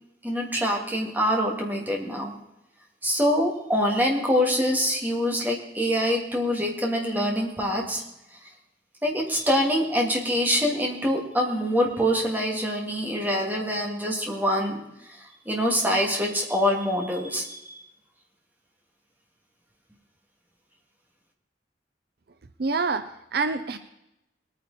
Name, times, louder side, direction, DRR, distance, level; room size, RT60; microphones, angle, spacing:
voice 1, 0.2-2.3 3.0-8.0 9.0-14.8 15.1-17.8, equal, 10° right, -1 dB, 2.7 m, -25 dB
voice 2, 22.6-23.8, right 4 dB, 60° right, 10 dB, 0.7 m, -27 dB
21.0 x 9.6 x 4.3 m, 0.88 s
head